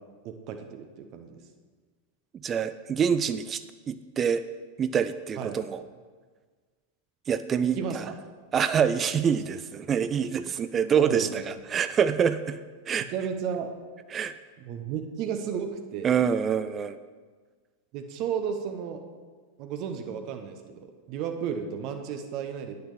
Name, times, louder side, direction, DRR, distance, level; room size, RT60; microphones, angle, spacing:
voice 1, 0.2-1.4 5.4-5.6 7.8-8.1 9.3-9.4 11.0-11.4 13.1-13.7 14.6-16.1 17.9-19.0 19.6-20.8 21.1-22.7, right 7 dB, 40° right, 6 dB, 0.9 m, -33 dB
voice 2, 2.4-4.4 4.8-5.8 7.3-8.1 8.5-12.6 12.9-13.1 14.1-14.3 16.0-17.0, right 7 dB, 25° right, 12 dB, 0.3 m, -26 dB
9.9 x 6.7 x 6.9 m, 1.5 s
figure-of-eight pair, 90°, 0 cm